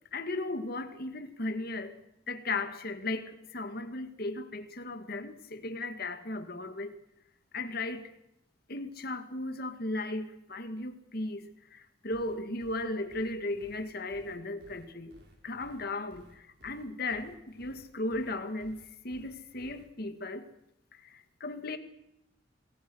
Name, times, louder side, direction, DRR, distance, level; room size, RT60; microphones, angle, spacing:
voice 1, 0.1-6.9 7.5-8.1 8.7-15.1 15.4-20.5 20.9-21.8, left 2 dB, 55° left, 2.2 m, -36 dB
sound 1, 12.1-19.9, equal, 60° right, 5.8 m, -57 dB
27.0 x 20.0 x 6.4 m
head